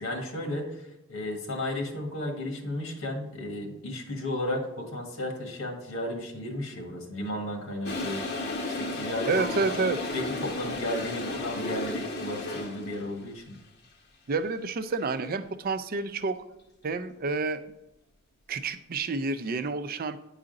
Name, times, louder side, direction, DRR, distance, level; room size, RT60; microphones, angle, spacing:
voice 1, 0.0-8.2 8.7-9.8 10.1-13.6, left 1 dB, 80° left, 3 dB, 1.6 m, -34 dB
Toilet flush, 7.8-13.1, left 2 dB, 50° left, 0.9 m, -33 dB
voice 2, 9.3-10.0 14.3-16.4 16.8-17.6 18.5-20.2, right 3 dB, 45° right, 11 dB, 0.5 m, -29 dB
9.7 x 4.9 x 3.8 m, 0.91 s
head